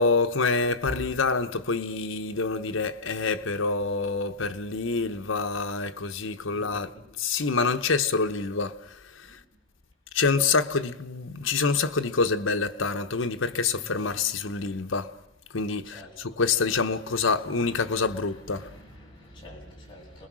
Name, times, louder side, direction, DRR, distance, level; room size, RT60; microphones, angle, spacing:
voice 1, 0.0-6.9 7.2-9.4 10.1-15.1 15.5-18.7, left 4 dB, 80° left, 1.0 m, -26 dB
voice 2, 6.5-7.0 9.3-9.4 13.8-14.1 15.8-20.3, equal, 25° left, 7.4 m, -46 dB
28.5 x 21.0 x 6.2 m
head